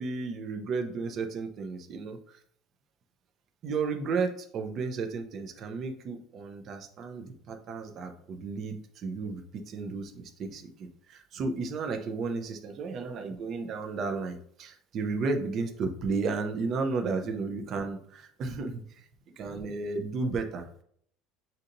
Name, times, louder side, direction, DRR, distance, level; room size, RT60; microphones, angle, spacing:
voice 1, 0.0-2.4 3.6-9.4 9.7-18.8 19.4-20.8, right 4 dB, 35° right, 5 dB, 0.5 m, -33 dB
6.3 x 2.8 x 2.6 m, 0.65 s
cardioid pair, 170°, 0 cm